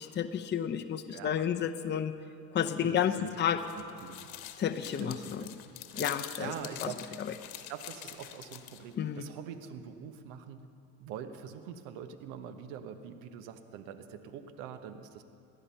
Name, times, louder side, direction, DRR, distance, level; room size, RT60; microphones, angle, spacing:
voice 1, 0.0-2.1 2.5-3.6 4.6-5.4 5.9-6.5 6.8-6.9 7.2-7.3 9.0-9.3, left 9 dB, 25° left, 7 dB, 0.7 m, -31 dB
voice 2, 1.1-1.7 2.8-3.4 3.8-4.3 5.0-5.5 5.9-6.1 6.4-7.2 7.7-10.6 11.0-15.2, right 8 dB, 70° right, 9 dB, 1.2 m, -44 dB
sound 1, 3.2-8.9, left 12 dB, 80° left, 1.1 m, -45 dB
18.5 x 12.0 x 5.7 m, 2.4 s
hypercardioid pair, 85°, 41 cm